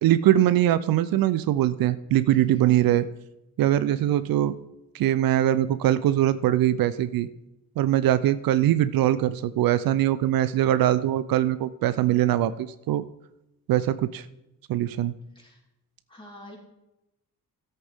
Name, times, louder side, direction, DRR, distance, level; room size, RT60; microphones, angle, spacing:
voice 1, 0.0-3.1 3.6-4.5 4.9-7.3 7.8-13.0 13.7-14.3 14.7-15.1, right 12 dB, 75° right, 14 dB, 0.6 m, -22 dB
voice 2, 2.3-2.8 3.9-4.3 15.3-15.6 16.1-16.6, left 1 dB, 15° left, -3 dB, 3.9 m, -47 dB
13.5 x 8.2 x 3.6 m, 0.90 s
cardioid pair, 85°, 35 cm